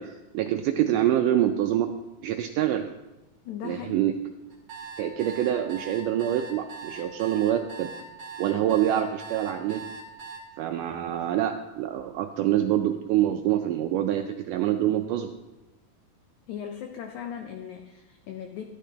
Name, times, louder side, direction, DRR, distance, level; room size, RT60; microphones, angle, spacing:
voice 1, 0.0-1.9 2.2-2.9 3.6-4.2 5.0-7.9 8.4-9.9 10.6-15.3, right 11 dB, 85° right, 5 dB, 1.8 m, -26 dB
voice 2, 3.5-4.1 16.5-18.6, left 9 dB, 85° left, 5 dB, 1.7 m, -38 dB
sound 1, 4.5-10.4, right 4 dB, 40° right, 1.9 m, -41 dB
13.5 x 12.0 x 2.8 m, 1.0 s
omnidirectional pair, 4.2 m